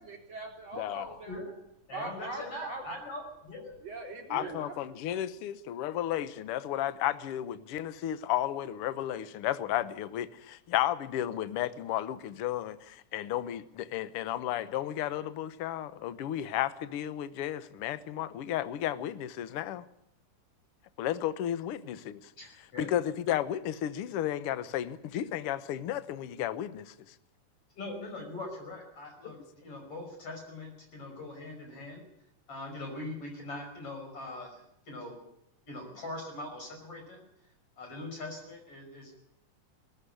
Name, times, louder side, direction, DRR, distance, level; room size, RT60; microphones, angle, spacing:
voice 1, 0.0-1.4 1.9-2.9 3.8-4.8, right 2 dB, 40° right, 4.9 m, -41 dB
voice 2, 0.7-1.0 4.3-19.8 21.0-22.3 22.8-26.9, left 12 dB, 70° left, 1.4 m, -33 dB
voice 3, 1.9-3.7 4.3-4.5 22.4-22.9 27.7-32.0 32.5-35.2 35.7-37.2 37.8-39.1, left 2 dB, 45° left, 6.5 m, -42 dB
20.0 x 14.0 x 9.9 m
omnidirectional pair, 3.6 m